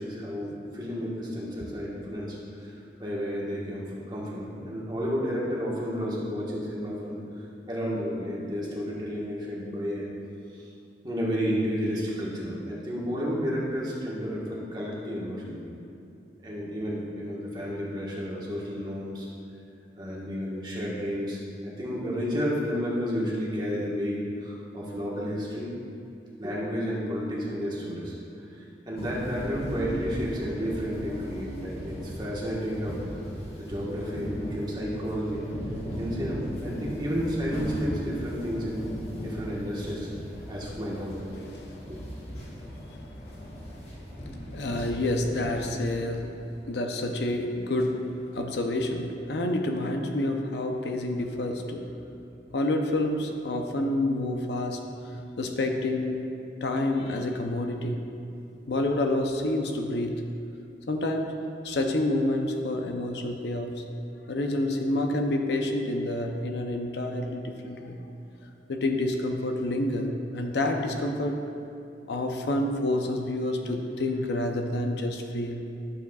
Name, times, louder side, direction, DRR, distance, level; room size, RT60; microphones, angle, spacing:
voice 1, 0.0-2.7 3.0-10.1 10.5-10.7 11.0-15.6 16.4-19.3 20.0-25.7 26.4-28.2 28.5-33.0 33.6-35.5 36.0-38.8 39.2-40.1 40.5-41.2 41.9-42.0, equal, 25° right, -6 dB, 1.4 m, -31 dB
sound 1, 29.0-46.0, equal, 35° left, 1.5 m, -38 dB
voice 2, 43.3-43.6 44.2-46.3 46.7-51.9 52.5-56.3 56.6-58.0 58.7-60.3 60.9-61.4 61.6-63.7 64.3-68.0 68.7-71.4 72.1-75.6, left 1 dB, 70° left, 4 dB, 0.6 m, -28 dB
11.5 x 6.9 x 2.4 m, 2.6 s
head